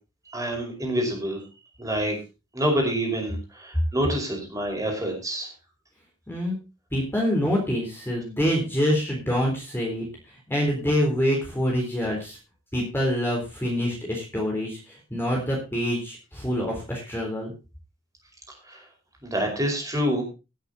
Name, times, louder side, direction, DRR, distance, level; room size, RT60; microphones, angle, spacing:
voice 1, 0.3-1.4 1.8-2.2 2.5-5.5 18.7-18.8 19.2-20.2, equal, 15° right, 1 dB, 5.1 m, -27 dB
voice 2, 6.3-6.6 6.9-10.1 10.5-12.4 12.7-17.5, equal, 10° left, -2 dB, 3.8 m, -26 dB
17.5 x 8.2 x 4.2 m, 0.30 s
head